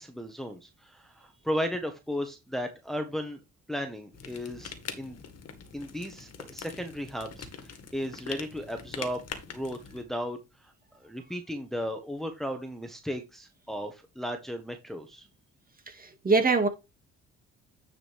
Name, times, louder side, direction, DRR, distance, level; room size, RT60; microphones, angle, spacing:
voice 1, 0.0-3.4 3.7-5.2 5.7-9.2 9.5-10.7 11.0-15.3, equal, ahead, 1.4 m, -35 dB
sound 1, 4.1-10.0, left 6 dB, 55° left, 1.9 m, -43 dB
voice 2, 15.9-16.7, right 4 dB, 30° right, 2.2 m, -23 dB
9.7 x 5.1 x 3.5 m
cardioid pair, 90°, 30 cm